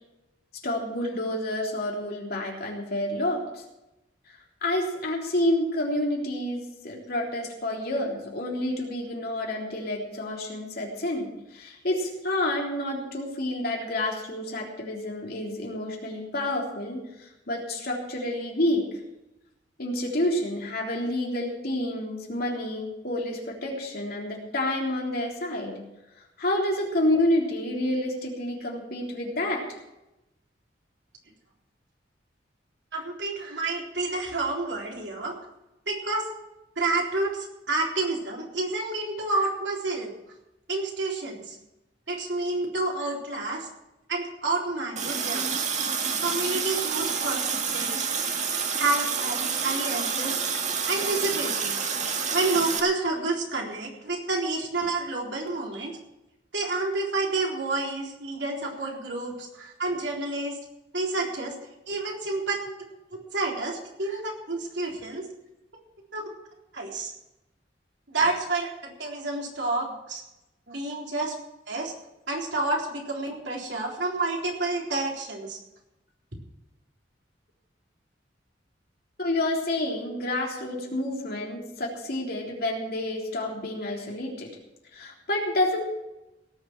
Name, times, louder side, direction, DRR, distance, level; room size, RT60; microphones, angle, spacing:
voice 1, 0.6-3.6 4.3-18.9 19.8-25.8 26.4-29.6 47.0-47.1 79.2-84.5 84.9-85.8, left 1 dB, 60° left, -1 dB, 3.6 m, -29 dB
voice 2, 32.9-35.3 35.9-36.3 36.8-40.1 40.7-41.6 42.1-43.7 44.1-45.6 46.2-48.1 48.8-50.4 50.8-51.8 52.3-56.0 56.5-60.6 60.9-61.5 61.9-62.6 63.3-65.3 66.1-66.3 66.7-67.1 68.1-70.2 70.7-71.4 71.7-71.9 72.3-75.6, right 2 dB, 70° right, -1 dB, 3.8 m, -29 dB
Water tap faucet, 45.0-52.8, right 6 dB, 40° right, 1.7 m, -28 dB
18.0 x 7.4 x 7.4 m, 0.93 s
head